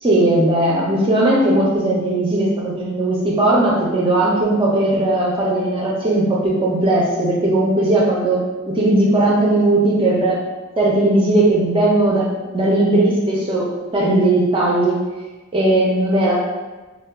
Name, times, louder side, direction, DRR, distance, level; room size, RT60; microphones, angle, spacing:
voice 1, 0.0-10.4 10.8-12.3 12.5-15.0 15.5-16.3, right 1 dB, 25° right, -4 dB, 0.4 m, -17 dB
4.4 x 2.1 x 2.2 m, 1.2 s
head